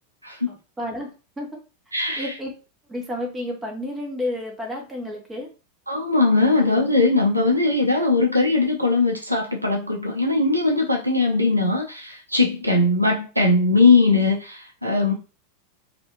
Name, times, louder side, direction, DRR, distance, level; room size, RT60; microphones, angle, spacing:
voice 1, 0.2-0.5 1.9-2.3 5.9-15.1, left 3 dB, 85° right, 1 dB, 0.6 m, -20 dB
voice 2, 0.8-1.1 1.4-1.6 2.2-2.5 2.9-5.5, left 1 dB, 15° right, 1 dB, 1.0 m, -30 dB
2.5 x 2.4 x 3.0 m, 0.32 s
figure-of-eight pair, 90°, 0 cm